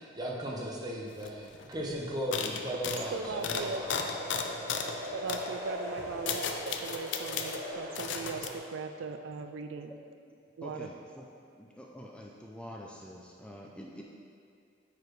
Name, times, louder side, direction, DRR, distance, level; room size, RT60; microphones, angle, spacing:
voice 1, 0.1-4.1, equal, 20° right, -3 dB, 0.8 m, -36 dB
sound 1, 1.2-1.3 1.5-1.8 2.3-5.0 5.3-5.5 6.0-7.6 8.0-8.5, left 6 dB, 65° left, 0.4 m, -35 dB
sound 2, 2.8-8.6, equal, 50° right, 1.5 m, -41 dB
voice 2, 3.1-3.8 5.1-9.9 10.6-10.9, right 5 dB, 75° right, 7 dB, 0.3 m, -39 dB
voice 3, 4.8-5.5 5.8-6.0 9.9-11.3 11.5-14.0, equal, 5° left, -2 dB, 0.4 m, -48 dB
9.2 x 4.9 x 3.2 m, 2.4 s
head